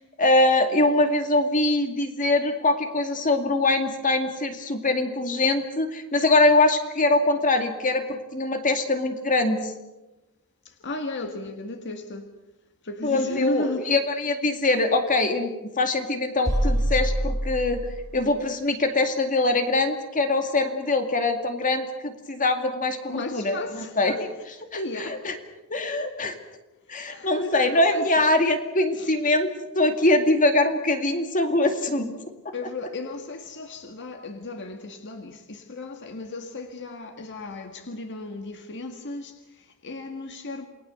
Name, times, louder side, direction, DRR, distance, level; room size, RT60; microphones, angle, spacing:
voice 1, 0.2-9.7 13.0-17.9 18.1-24.6 25.2-25.3 25.7-26.4 26.9-29.5 29.8-32.1 32.4-32.5, left 2 dB, 35° left, 2.3 m, -23 dB
voice 2, 10.7-12.3 12.8-13.9 23.1-24.2 24.7-25.3 26.8-28.1 29.0-29.1 32.5-40.6, left 2 dB, 55° left, 1.8 m, -35 dB
sound 1, 16.5-18.3, equal, 15° right, 3.8 m, -25 dB
28.5 x 20.0 x 6.9 m
head